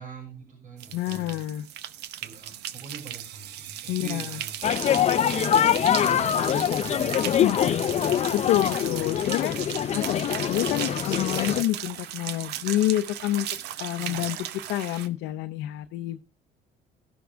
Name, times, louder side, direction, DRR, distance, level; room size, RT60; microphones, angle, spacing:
voice 1, 0.0-1.4 2.2-4.6 5.2-7.4 7.7-8.3 14.0-14.3, right 4 dB, 50° right, 2 dB, 6.1 m, -42 dB
sound 1, 0.8-15.1, right 12 dB, 80° right, 0.8 m, -36 dB
voice 2, 0.9-1.7 3.9-4.4 7.4-7.8 8.3-9.6 9.9-13.5 13.8-14.4 14.7-16.2, left 15 dB, 90° left, 6 dB, 0.7 m, -28 dB
sound 2, 4.6-11.6, left 10 dB, 40° left, 0.5 m, -24 dB
16.0 x 6.3 x 3.4 m, 0.28 s
cardioid pair, 110°, 17 cm